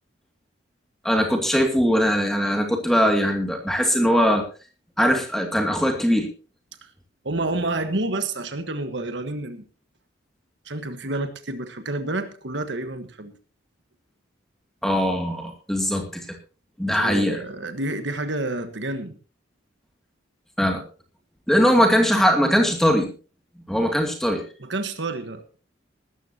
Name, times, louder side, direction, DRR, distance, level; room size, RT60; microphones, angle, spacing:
voice 1, 1.0-4.4 5.0-6.3 14.8-16.2 16.8-17.4 20.6-20.8 21.5-23.1 23.7-24.4, equal, ahead, 3 dB, 2.4 m, -20 dB
voice 2, 7.2-9.6 10.6-13.3 16.9-19.2 24.6-25.6, right 2 dB, 65° right, 9 dB, 1.4 m, -29 dB
19.0 x 13.5 x 2.9 m, 0.36 s
head